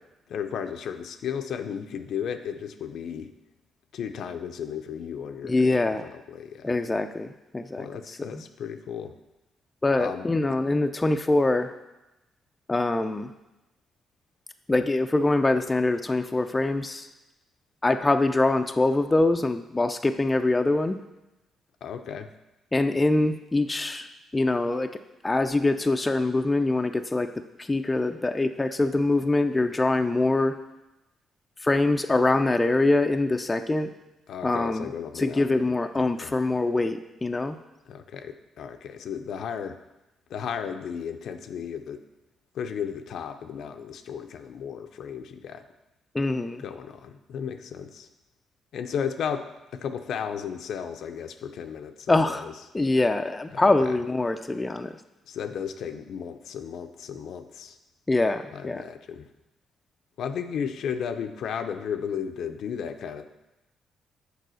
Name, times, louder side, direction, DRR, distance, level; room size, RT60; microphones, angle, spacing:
voice 1, 0.3-3.3 3.9-6.8 7.8-9.1 10.0-10.6 21.8-22.3 34.3-36.4 37.9-39.8 40.3-42.0 42.5-45.6 46.6-48.1 48.7-52.6 53.5-54.0 55.3-57.8 58.5-59.3 60.2-63.2, left 7 dB, 70° left, 7 dB, 0.6 m, -34 dB
voice 2, 5.4-6.1 6.6-7.3 7.5-7.9 8.3-8.4 9.8-11.7 12.7-13.3 14.7-17.1 17.8-21.0 22.7-24.1 24.3-24.9 25.2-27.3 27.7-30.5 31.6-33.9 34.4-34.9 35.2-37.6 46.1-46.6 52.1-52.4 52.7-54.9 58.1-58.8, left 2 dB, 20° left, 7 dB, 0.4 m, -24 dB
6.7 x 4.7 x 6.3 m, 0.96 s
cardioid pair, 90°, 0 cm